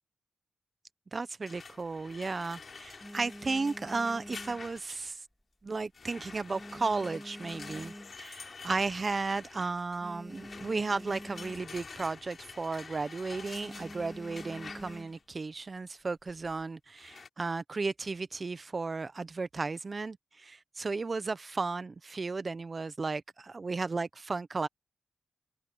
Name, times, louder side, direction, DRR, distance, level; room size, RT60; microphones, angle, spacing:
voice 1, 1.1-5.3 5.6-24.7, right 3 dB, 35° right, 0.5 m, -34 dB
sound 1, 1.4-5.1 5.9-15.2 17.0-17.3, left 5 dB, 55° left, 2.9 m, -48 dB
sound 2, 1.7-2.4 2.8-5.3 5.6-6.0 6.3-8.5 9.0-9.1 9.3-9.4 9.7-11.9 12.2-12.5 12.8-13.1 13.5-15.3 16.1-16.6, equal, ahead, 1.6 m, -47 dB
open air
wide cardioid pair, 100°, 0 cm